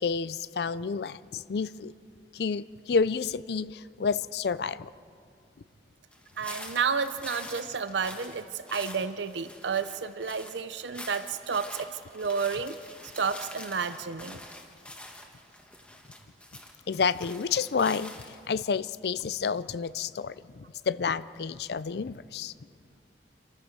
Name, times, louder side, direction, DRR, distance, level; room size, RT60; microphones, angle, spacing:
voice 1, 0.0-1.9 2.3-4.9 16.9-18.1 18.5-22.5, left 5 dB, 65° left, 16 dB, 0.4 m, -29 dB
sound 1, 6.1-18.5, left 1 dB, 5° left, 1.6 m, -46 dB
voice 2, 6.4-12.8 13.2-14.4, right 5 dB, 80° right, 11 dB, 0.7 m, -31 dB
28.0 x 14.5 x 6.5 m, 2.3 s
head